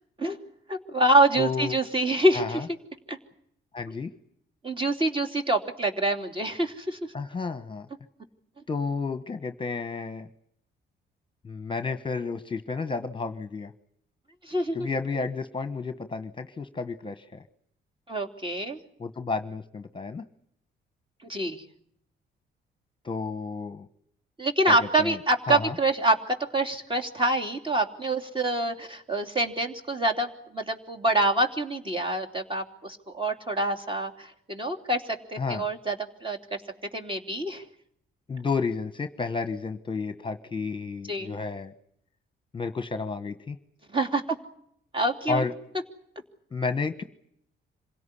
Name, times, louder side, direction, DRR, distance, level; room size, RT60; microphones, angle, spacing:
voice 1, 0.7-2.6 3.1-3.2 4.6-7.0 14.4-14.9 18.1-18.8 21.2-21.6 24.4-35.9 36.2-36.4 36.9-37.6 41.1-41.3 43.9-44.2 44.9-45.4, right 2 dB, 25° right, 4 dB, 3.1 m, -26 dB
voice 2, 1.4-1.8 2.3-2.7 3.7-4.1 7.1-7.9 8.7-10.3 11.4-13.7 14.7-17.4 19.0-20.2 23.0-23.9 24.7-25.2 25.5-25.7 35.4-35.6 38.3-41.7 42.5-43.6 45.3-45.5 46.5-47.0, left 4 dB, 25° left, 9 dB, 1.2 m, -31 dB
27.0 x 17.0 x 10.0 m, 0.71 s
cardioid pair, 90°, 20 cm